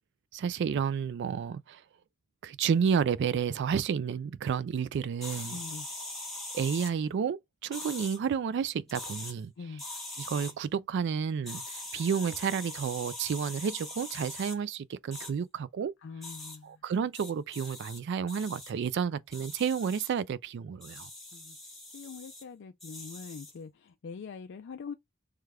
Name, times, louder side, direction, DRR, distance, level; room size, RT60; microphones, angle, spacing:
voice 1, 0.3-1.8 2.4-5.6 6.5-9.5 10.2-15.9 16.6-21.1, right 7 dB, 55° right, 0.3 m, -31 dB
sound 1, 5.2-6.9 7.7-8.2 8.9-9.3 9.8-10.5 11.5-14.6 15.1-15.3 16.2-16.6 17.1-18.0 18.3-18.7 19.3-20.1 20.8-22.4 22.8-23.6, left 2 dB, ahead, 1.3 m, -42 dB
voice 2, 5.5-5.9 9.6-9.8 16.0-16.8 21.3-21.6 21.9-24.9, left 5 dB, 55° left, 0.4 m, -43 dB
3.3 x 3.2 x 3.5 m
head